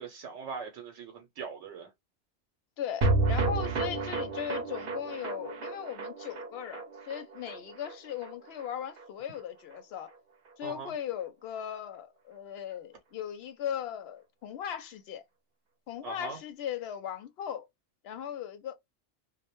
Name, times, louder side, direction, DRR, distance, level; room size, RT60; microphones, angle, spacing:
voice 1, 0.0-1.9 10.6-10.9 16.0-16.4, right 5 dB, 85° right, 0.9 m, -41 dB
voice 2, 2.8-10.1 10.6-15.2 15.9-17.7 18.0-18.7, left 9 dB, 70° left, 0.8 m, -38 dB
sound 1, 3.0-9.4 9.7-9.8 10.1-10.2, right 3 dB, 60° right, 0.7 m, -32 dB
2.1 x 2.1 x 2.9 m
omnidirectional pair, 1.2 m